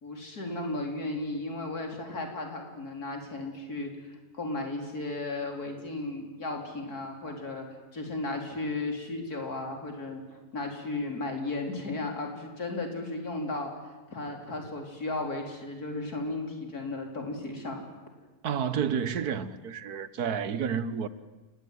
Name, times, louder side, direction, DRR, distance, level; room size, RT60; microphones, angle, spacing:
voice 1, 0.0-17.8, left 2 dB, 75° left, 4.7 m, -35 dB
voice 2, 18.4-21.1, right 7 dB, 75° right, 1.6 m, -30 dB
29.0 x 19.5 x 9.4 m
omnidirectional pair, 1.6 m